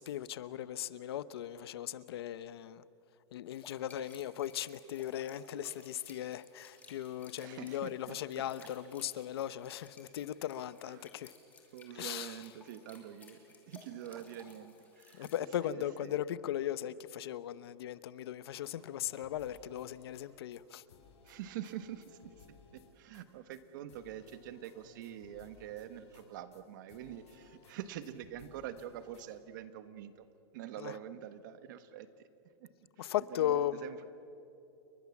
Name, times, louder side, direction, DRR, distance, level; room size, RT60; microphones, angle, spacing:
voice 1, 0.0-2.8 3.3-11.3 12.0-12.3 15.1-20.8 30.8-30.9 33.0-33.8, left 11 dB, 65° left, 16 dB, 0.9 m, -37 dB
sound 1, 3.5-15.5, left 4 dB, 10° left, 2.8 m, -59 dB
voice 2, 7.3-8.2 10.8-11.2 11.7-13.4 13.6-16.2 21.2-30.3 30.5-32.3 32.6-32.7 33.0-34.0, right 11 dB, 45° right, 11 dB, 1.4 m, -46 dB
sound 2, 18.5-20.3 20.5-20.6 20.9-23.2 23.5-23.6 23.9-26.6 26.9-27.7 28.0-29.3, left 5 dB, 85° left, 7.5 m, -61 dB
29.5 x 23.0 x 7.3 m, 2.7 s
supercardioid pair, 175°, 14 cm